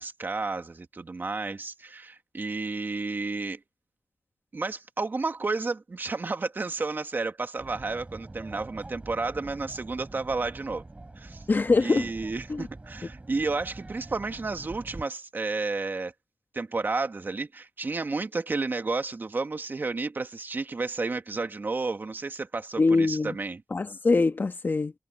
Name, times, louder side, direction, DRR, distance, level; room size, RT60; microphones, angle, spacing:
voice 1, 0.0-3.6 4.5-10.8 11.2-11.4 11.8-16.1 16.5-23.6, right 3 dB, 45° right, 2.2 m, -31 dB
sound 1, 7.6-15.0, right 2 dB, 25° right, 4.1 m, -44 dB
voice 2, 11.5-12.1 12.5-12.7 22.8-23.3 23.7-24.9, left 3 dB, 45° left, 1.4 m, -23 dB
wide cardioid pair, 80°, 5 cm